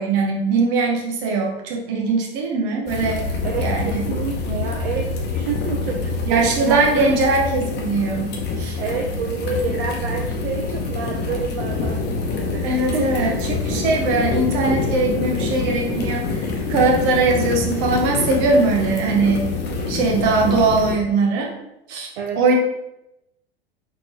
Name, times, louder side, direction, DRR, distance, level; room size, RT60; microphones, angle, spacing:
voice 1, 0.0-3.2 3.6-4.0 6.3-8.8 12.6-13.3 13.6-19.5 19.9-21.5 21.9-22.1 22.4-22.6, right 3 dB, 50° right, 1 dB, 1.2 m, -20 dB
sound 1, 2.9-20.9, left 3 dB, 35° left, 1.0 m, -26 dB
voice 2, 3.4-7.1 8.8-13.4 22.2-22.5, right 5 dB, 65° right, 1 dB, 0.7 m, -29 dB
4.1 x 4.0 x 3.0 m, 0.88 s
figure-of-eight pair, 90°, 31 cm